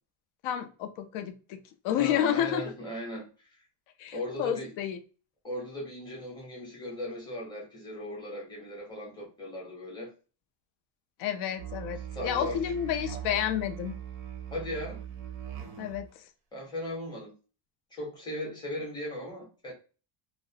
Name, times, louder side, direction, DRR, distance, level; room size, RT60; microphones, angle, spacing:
voice 1, 0.4-2.6 4.0-5.0 11.2-14.0 15.8-16.3, left 10 dB, 80° left, 0.6 m, -30 dB
voice 2, 2.0-3.3 4.1-4.7 5.4-10.1 12.1-12.7 14.5-15.0 16.5-17.3 17.9-19.7, left 1 dB, 10° left, 0.6 m, -37 dB
Musical instrument, 11.6-16.1, right 9 dB, 30° right, 0.4 m, -40 dB
2.4 x 2.0 x 2.6 m
cardioid pair, 180°, 49 cm